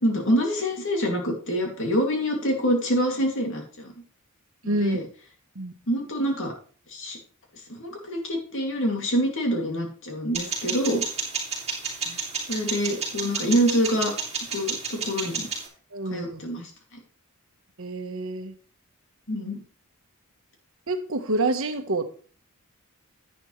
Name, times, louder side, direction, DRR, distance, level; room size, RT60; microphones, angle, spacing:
voice 1, 0.0-3.9 4.8-5.0 5.9-6.5 6.9-7.2 7.7-11.0 12.5-14.1 14.5-15.5 16.1-16.7 19.3-19.6, equal, 60° left, 2 dB, 2.6 m, -26 dB
voice 2, 4.6-5.0 5.5-5.7 12.1-12.2 15.9-16.4 17.8-18.5 20.9-22.0, right 2 dB, 65° right, 8 dB, 1.2 m, -27 dB
sound 1, 10.3-15.7, right 4 dB, 30° right, 3.6 m, -31 dB
10.5 x 9.2 x 3.2 m, 0.41 s
head